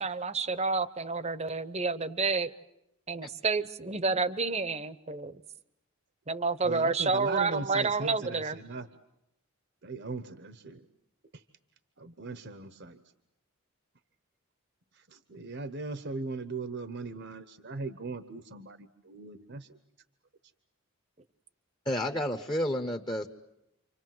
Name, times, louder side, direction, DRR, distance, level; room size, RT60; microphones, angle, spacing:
voice 1, 0.0-2.5 3.1-5.3 6.3-8.6, right 4 dB, 30° right, 15 dB, 0.9 m, -29 dB
voice 2, 6.6-8.9 9.8-10.9 11.3-11.4 12.0-13.0 14.9-19.7, right 3 dB, 50° right, 12 dB, 1.0 m, -39 dB
voice 3, 21.8-23.3, left 1 dB, 20° left, 5 dB, 1.1 m, -30 dB
29.5 x 25.5 x 7.8 m, 0.84 s
head